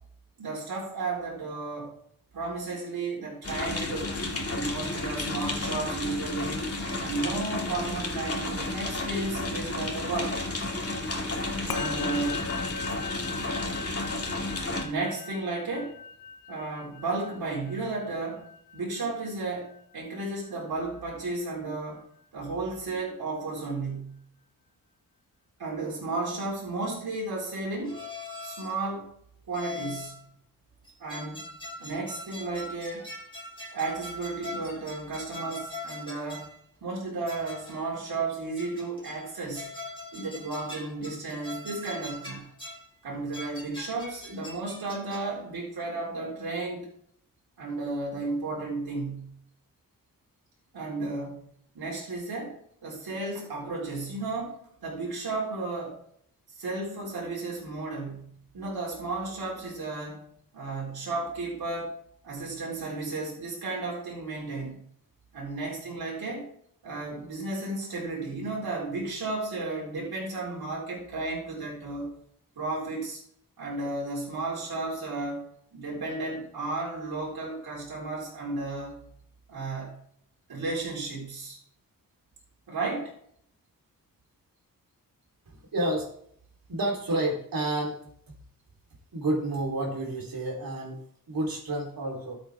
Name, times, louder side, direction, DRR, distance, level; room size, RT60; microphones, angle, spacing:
voice 1, 0.4-1.9 2.3-4.2 4.4-6.7 7.0-10.5 11.7-12.5 14.8-16.0 16.5-18.5 18.7-22.0 22.3-24.2 25.6-28.0 28.4-29.1 29.5-30.2 31.0-31.5 31.8-33.1 33.7-36.5 36.8-39.7 40.1-42.5 43.0-46.9 47.6-49.4 50.7-51.5 51.7-56.0 56.6-61.9 62.2-64.8 65.3-66.5 66.8-72.1 72.6-73.2 73.6-75.4 75.7-79.0 79.5-80.0 80.5-81.6 82.7-83.1, right 3 dB, 90° right, -5 dB, 4.2 m, -33 dB
sound 1, 3.4-14.8, left 2 dB, 40° left, 2.3 m, -32 dB
Musical instrument, 11.7-21.2, left 5 dB, 80° left, 1.0 m, -40 dB
sound 2, 27.9-28.9 29.5-30.2 30.8-36.6 37.3-37.9 38.6-39.3 39.5-42.9 43.3-45.4, left 2 dB, 15° left, 3.7 m, -42 dB
voice 2, 85.5-86.1 86.7-88.0 89.1-92.4, right 1 dB, 70° right, -1 dB, 3.7 m, -30 dB
13.5 x 8.2 x 3.6 m, 0.66 s
wide cardioid pair, 90°, 36 cm